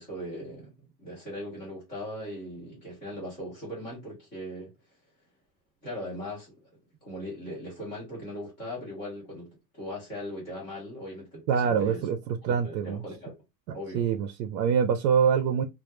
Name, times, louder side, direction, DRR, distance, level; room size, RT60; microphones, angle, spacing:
voice 1, 0.0-4.7 5.8-6.6 7.0-12.1 12.5-13.3 13.7-14.1, equal, 10° left, 0.3 m, -39 dB
voice 2, 11.5-13.0 13.7-15.7, right 7 dB, 90° right, 0.6 m, -25 dB
2.1 x 2.1 x 2.9 m
supercardioid pair, 160°, 50 cm